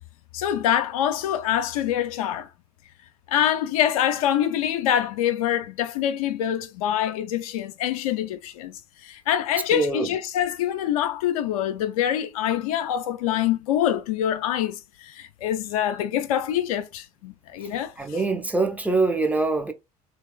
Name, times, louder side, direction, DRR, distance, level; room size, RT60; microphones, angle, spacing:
voice 1, 0.3-2.5 3.3-18.2, left 10 dB, 65° left, 0.5 m, -25 dB
voice 2, 9.7-10.1 18.0-19.7, right 3 dB, 10° right, 0.6 m, -23 dB
2.9 x 2.8 x 2.2 m
figure-of-eight pair, 65°, 20 cm